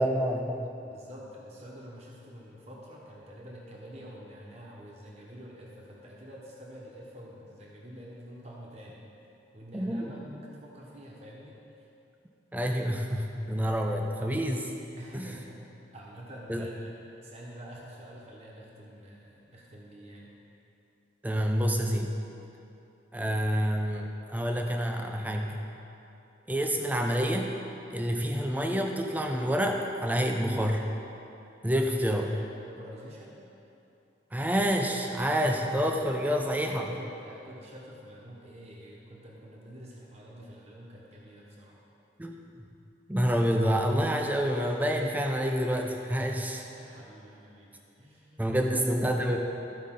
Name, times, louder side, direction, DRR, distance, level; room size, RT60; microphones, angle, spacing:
voice 1, 0.0-0.6 9.7-10.1 12.5-14.7 15.1-15.3 16.5-16.7 21.2-22.2 23.1-25.6 26.5-27.5 27.9-30.9 31.6-32.3 34.3-36.9 42.2-42.4 43.1-46.6 48.4-49.4, equal, 10° right, 2 dB, 0.5 m, -28 dB
voice 2, 0.8-9.0 9.5-11.9 15.0-15.6 15.9-16.9 17.2-20.3 31.7-33.4 36.6-41.8 46.5-48.9, equal, 35° right, -4 dB, 1.1 m, -48 dB
14.0 x 5.2 x 3.8 m, 2.8 s
head